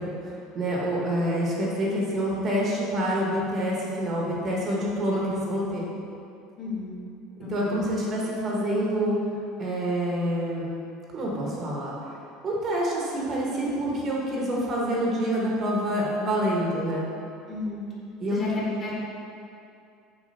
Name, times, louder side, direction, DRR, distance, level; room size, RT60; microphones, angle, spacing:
voice 1, 0.0-5.9 7.5-9.2 9.6-10.8 11.1-11.9 12.4-17.1 18.2-18.4, equal, 30° right, -4 dB, 1.0 m, -27 dB
voice 2, 6.6-7.0 7.4-7.8 17.5-17.8 18.3-18.5 18.8-18.9, left 3 dB, 30° left, -5 dB, 1.4 m, -33 dB
6.6 x 3.2 x 5.3 m, 2.5 s
cardioid pair, 155°, 0 cm